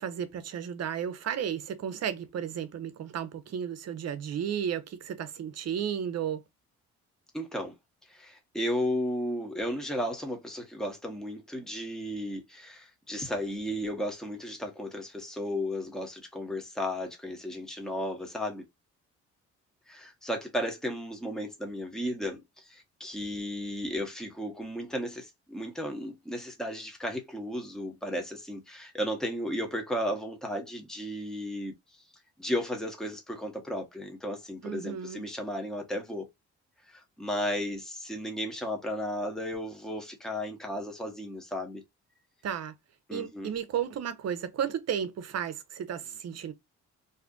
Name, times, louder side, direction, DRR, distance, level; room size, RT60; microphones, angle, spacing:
voice 1, 0.0-6.4 34.6-35.2 42.4-42.7 43.1-46.5, right 8 dB, 55° right, 0.8 m, -33 dB
voice 2, 7.3-7.7 8.1-18.6 19.9-31.7 32.4-36.3 36.9-41.8 43.1-43.5, equal, ahead, 1.1 m, -34 dB
2.7 x 2.4 x 3.6 m
cardioid pair, 90°, 30 cm